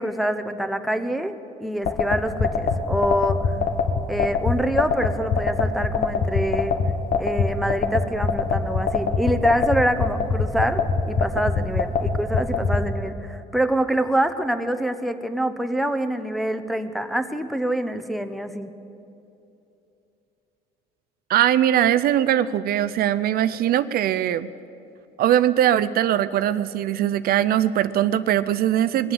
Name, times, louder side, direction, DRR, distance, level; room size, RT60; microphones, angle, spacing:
voice 1, 0.0-3.6 4.1-6.7 7.2-18.7, right 1 dB, ahead, 7 dB, 0.8 m, -25 dB
sound 1, 1.9-12.8, left 5 dB, 55° left, 1.5 m, -22 dB
voice 2, 21.3-24.5 25.2-29.1, right 11 dB, 65° right, 14 dB, 0.5 m, -21 dB
21.0 x 7.8 x 7.7 m, 2.8 s
cardioid pair, 110°, 17 cm